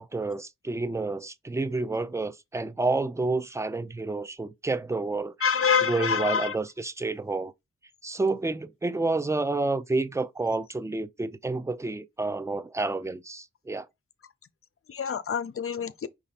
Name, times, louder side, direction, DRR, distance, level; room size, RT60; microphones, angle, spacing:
voice 1, 0.0-5.3 5.8-7.5 8.0-13.9, right 3 dB, 10° right, 0.4 m, -29 dB
voice 2, 5.4-6.5 14.9-16.1, left 6 dB, 50° left, 0.6 m, -26 dB
5.2 x 2.5 x 4.1 m
cardioid pair, 70°, 29 cm